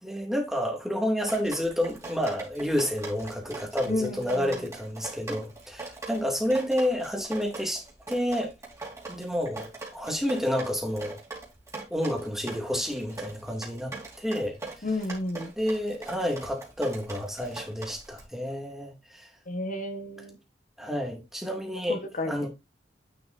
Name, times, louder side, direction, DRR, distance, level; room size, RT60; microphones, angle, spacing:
voice 1, 0.0-8.5 9.1-11.2 11.9-14.6 15.6-19.3 20.8-22.5, equal, ahead, 2.4 m, -30 dB
Drip, 1.2-18.2, right 3 dB, 15° right, 3.2 m, -41 dB
voice 2, 3.9-4.5 14.8-15.5 19.5-20.4 21.9-22.5, left 2 dB, 45° left, 1.2 m, -32 dB
10.0 x 5.7 x 2.6 m
head